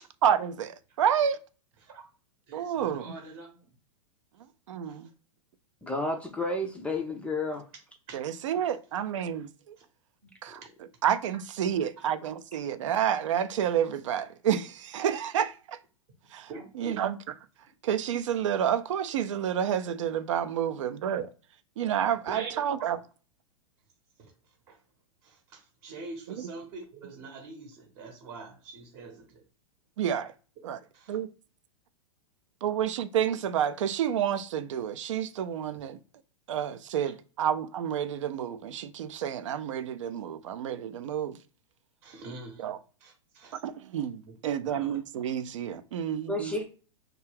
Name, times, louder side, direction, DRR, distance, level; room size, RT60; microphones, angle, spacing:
voice 1, 0.2-1.4 2.5-3.1 4.7-5.1 8.1-9.8 10.4-10.6 11.0-15.8 16.3-17.2 17.8-21.3 21.8-23.0 26.4-26.5 30.0-30.3 30.6-30.8 31.1-31.3 32.6-36.0 36.5-41.4 42.6-42.8 43.6-46.5, right 9 dB, 60° right, 0.4 m, -29 dB
voice 2, 2.5-3.7 4.9-5.0 8.1-8.2 16.5-17.0 22.3-22.9 24.7-24.8 25.2-29.4 37.0-37.1 42.0-42.7 43.0-43.6 44.2-44.4 44.6-45.0, right 4 dB, 45° right, 0.8 m, -44 dB
voice 3, 5.8-7.6 46.3-46.6, left 2 dB, 5° left, 0.4 m, -31 dB
2.3 x 2.2 x 3.3 m
figure-of-eight pair, 100°, 18 cm